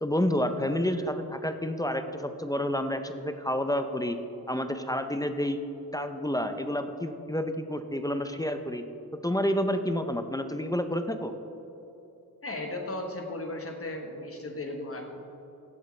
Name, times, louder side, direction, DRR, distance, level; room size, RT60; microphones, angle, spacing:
voice 1, 0.0-4.2 4.5-5.6 5.9-8.8 9.2-11.3, equal, 10° left, 8 dB, 0.5 m, -29 dB
voice 2, 12.4-15.2, left 2 dB, 35° left, 2 dB, 1.2 m, -36 dB
16.0 x 7.9 x 3.2 m, 2.9 s
wide cardioid pair, 125°, 38 cm